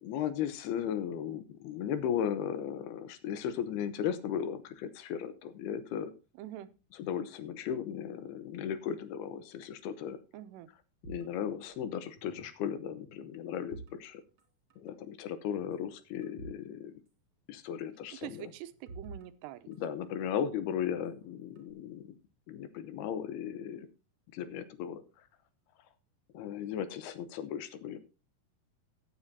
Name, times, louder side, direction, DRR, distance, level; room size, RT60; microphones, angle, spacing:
voice 1, 0.0-6.1 7.0-10.2 11.0-14.2 14.8-16.9 17.5-18.5 19.7-22.2 22.5-23.9 24.3-25.0 26.3-28.0, left 9 dB, 75° left, 13 dB, 2.7 m, -36 dB
voice 2, 6.4-6.7 10.3-10.7 18.2-19.7, right 12 dB, 80° right, 12 dB, 2.8 m, -44 dB
sound 1, 11.0-12.6 12.9-14.5 14.7-14.9 15.5-16.7 16.9-17.0 18.2-20.3 20.9-21.7, right 3 dB, 30° right, 3.2 m, -51 dB
16.0 x 9.8 x 2.7 m, 0.30 s
omnidirectional pair, 4.9 m